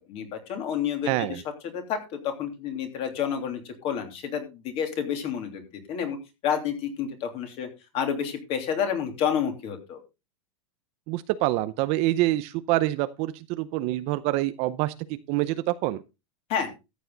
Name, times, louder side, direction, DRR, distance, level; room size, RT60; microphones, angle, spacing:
voice 1, 0.1-1.4 1.7-6.2 6.4-7.7 7.9-10.0 16.5-16.7, left 8 dB, 35° left, 6 dB, 3.1 m, -29 dB
voice 2, 1.1-1.4 11.1-14.9 15.3-16.0, right 17 dB, 35° right, 13 dB, 0.6 m, -26 dB
14.0 x 8.3 x 3.9 m, 0.27 s
supercardioid pair, 160°, 18 cm